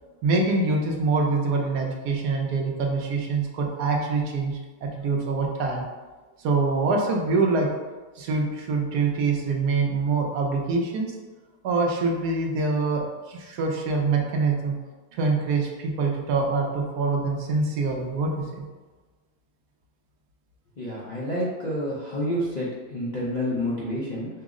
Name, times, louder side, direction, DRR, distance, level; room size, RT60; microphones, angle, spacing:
voice 1, 0.2-5.8 6.4-7.7 8.2-11.1 11.6-13.0 13.3-14.8 15.1-18.6, right 3 dB, 85° right, 0 dB, 1.3 m, -25 dB
voice 2, 20.8-24.3, equal, 55° left, -7 dB, 0.4 m, -29 dB
5.3 x 2.0 x 3.6 m, 1.3 s
omnidirectional pair, 1.7 m